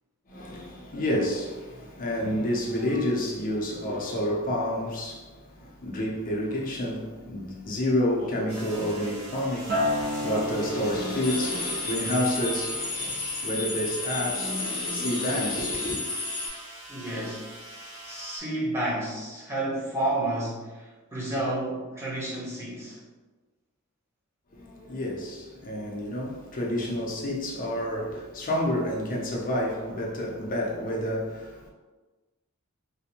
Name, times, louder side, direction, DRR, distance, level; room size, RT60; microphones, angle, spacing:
voice 1, 0.3-16.0 24.5-31.7, left 1 dB, 40° left, 0.5 m, -29 dB
sound 1, 8.5-18.4, right 1 dB, 80° right, 1.4 m, -43 dB
Acoustic guitar, 9.7-14.1 14.5-14.9, left 1 dB, 40° right, 0.5 m, -33 dB
sound 2, 11.2-16.5, left 3 dB, 80° left, 0.7 m, -32 dB
voice 2, 16.9-17.4 18.0-23.0, right 1 dB, 10° right, 0.7 m, -31 dB
2.5 x 2.1 x 2.8 m
head